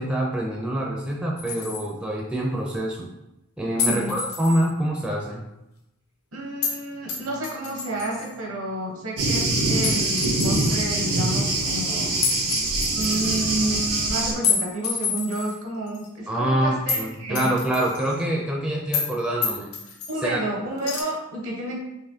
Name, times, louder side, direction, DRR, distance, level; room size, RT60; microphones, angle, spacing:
voice 1, 0.0-3.1 3.6-5.4 16.3-19.7 20.2-20.4, right 1 dB, 5° right, -3 dB, 0.4 m, -25 dB
sound 1, 1.4-1.9 3.8-4.7 6.6-6.8 7.1-8.3 9.8-10.8 12.2-13.4 14.4-15.6 15.9-16.1 16.9-17.1 17.3-18.2 18.9-19.1 19.4-20.1 20.8-21.0, left 6 dB, 65° left, 0.6 m, -28 dB
voice 2, 6.3-12.1 12.9-17.5 20.1-21.8, right 1 dB, 65° right, -1 dB, 1.0 m, -30 dB
Thunder, 9.2-14.3, right 2 dB, 90° right, 1.0 m, -24 dB
4.1 x 3.0 x 2.7 m, 0.88 s
head